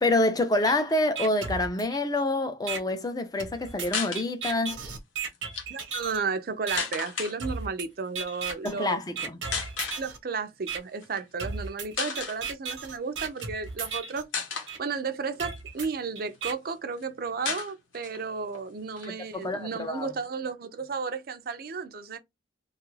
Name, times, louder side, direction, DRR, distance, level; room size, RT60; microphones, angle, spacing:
voice 1, 0.0-4.8 8.6-9.4 19.0-20.1, left 2 dB, 20° left, 0.5 m, -27 dB
sound 1, 0.7-0.8 1.2-2.2 2.7-2.8 3.4-6.2 6.7-6.8 7.4-7.9 8.2-8.7 9.2-10.2 10.7-10.8 11.4-14.2 14.7-14.8 15.4-16.5, right 5 dB, 90° right, 0.9 m, -35 dB
sound 2, 3.8-4.2 5.3-5.7 6.8-7.3 8.4-8.6 9.5-10.0 11.0-11.2 11.6-11.7 11.9-12.4 13.3-13.9 14.3-14.7 15.3-16.4 16.7-16.8 17.0-17.1 17.4-18.2 18.5-18.6 18.9-20.0, left 5 dB, 90° left, 0.9 m, -33 dB
voice 2, 5.7-9.0 10.0-14.3 14.8-22.2, right 5 dB, 50° right, 0.5 m, -33 dB
2.6 x 2.4 x 3.1 m
head